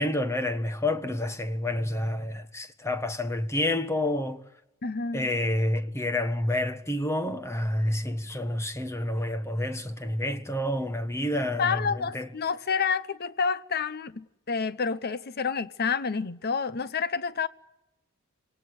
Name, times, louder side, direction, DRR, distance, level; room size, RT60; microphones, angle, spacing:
voice 1, 0.0-4.4 5.1-12.3, left 1 dB, 10° left, 1.4 m, -29 dB
voice 2, 4.8-5.3 11.6-17.5, left 5 dB, 45° left, 0.9 m, -29 dB
26.5 x 18.5 x 9.5 m
head